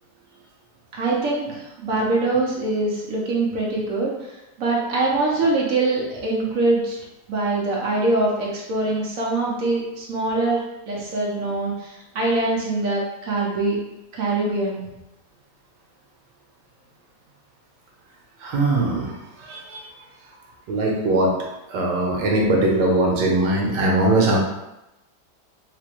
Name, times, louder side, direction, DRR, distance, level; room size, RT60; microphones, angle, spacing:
voice 1, 0.9-4.3 4.6-7.0 7.3-13.8 14.1-14.8, right 2 dB, 60° right, -3 dB, 1.1 m, -23 dB
voice 2, 18.4-19.8 20.7-21.4 21.7-24.4, right 2 dB, 90° right, -2 dB, 1.4 m, -21 dB
4.0 x 2.2 x 3.0 m, 0.93 s
omnidirectional pair, 1.8 m